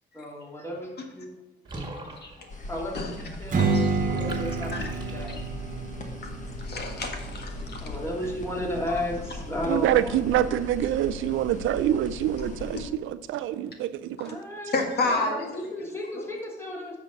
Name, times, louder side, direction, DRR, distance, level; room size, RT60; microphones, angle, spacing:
voice 1, 0.1-1.3 2.7-5.3 7.8-10.4 14.2-17.0, left 1 dB, 15° left, -2 dB, 2.6 m, -34 dB
Water / Bathtub (filling or washing), 1.6-5.7, right 2 dB, 20° right, 1.9 m, -43 dB
sound 1, 2.5-12.9, left 2 dB, 40° left, 1.4 m, -38 dB
Strum, 3.5-8.7, right 4 dB, 40° right, 1.2 m, -30 dB
voice 2, 3.6-4.0 4.7-4.8 5.3-5.4 6.2-6.3 6.6-7.9 14.7-15.5, left 2 dB, 55° left, 2 dB, 1.7 m, -30 dB
voice 3, 9.7-14.3, right 12 dB, 80° right, 13 dB, 0.5 m, -26 dB
10.0 x 6.2 x 4.0 m, 1.0 s
cardioid pair, 90°, 20 cm